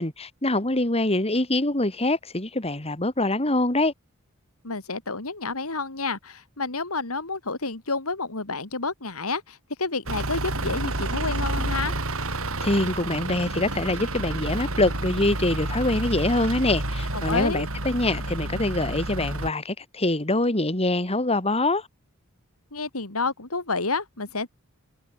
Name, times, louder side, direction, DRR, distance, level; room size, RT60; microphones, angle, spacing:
voice 1, 0.0-3.9 12.6-21.9, left 2 dB, 30° left, 3.6 m, -24 dB
voice 2, 4.6-12.0 17.1-17.7 22.7-24.5, left 3 dB, 80° left, 3.3 m, -29 dB
Truck / Idling, 10.1-19.5, right 2 dB, 70° right, 6.8 m, -29 dB
head